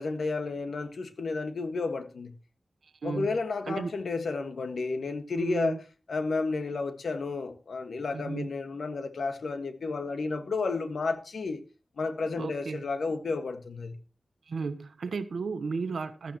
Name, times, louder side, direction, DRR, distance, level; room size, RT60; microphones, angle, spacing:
voice 1, 0.0-2.3 3.0-5.8 6.1-11.6 12.0-14.0, left 4 dB, 90° left, 1.7 m, -32 dB
voice 2, 5.4-5.8 8.1-8.5 12.4-12.8 14.5-16.4, right 4 dB, 85° right, 1.1 m, -33 dB
15.5 x 12.5 x 3.1 m
wide cardioid pair, 100°, 0 cm